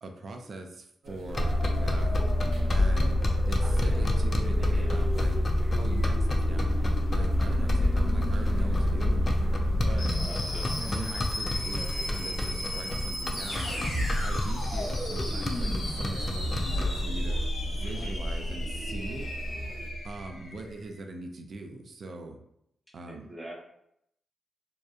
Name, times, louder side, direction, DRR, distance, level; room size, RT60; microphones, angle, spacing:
voice 1, 0.0-2.2 2.7-3.2 3.5-5.4 5.8-9.3 9.9-10.2 10.8-13.8 14.2-19.4 20.0-22.4 22.9-23.3, right 2 dB, 60° right, 4 dB, 0.3 m, -41 dB
sound 1, 1.0-19.9, left 1 dB, 80° right, 0.7 m, -43 dB
sound 2, 1.3-20.7, equal, 70° left, 1.2 m, -29 dB
sound 3, 1.3-17.0, left 1 dB, 35° left, 0.3 m, -31 dB
voice 2, 4.6-4.9 10.1-10.8 17.8-18.2 23.1-23.5, right 1 dB, 10° right, -3 dB, 0.7 m, -44 dB
2.7 x 2.1 x 2.3 m, 0.76 s
cardioid pair, 95°, 0 cm